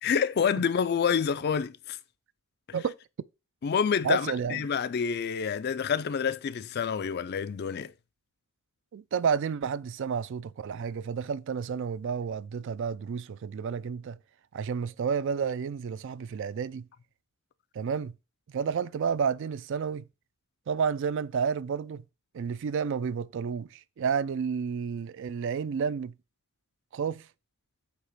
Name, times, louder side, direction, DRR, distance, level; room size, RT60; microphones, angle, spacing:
voice 1, 0.0-2.0 3.6-7.9, left 7 dB, 45° left, 0.4 m, -28 dB
voice 2, 4.0-4.6 8.9-14.2 14.5-16.9 17.7-18.1 18.5-20.0 20.7-22.0 22.3-26.1 26.9-27.2, right 6 dB, 55° right, 0.3 m, -30 dB
8.1 x 2.9 x 5.6 m
head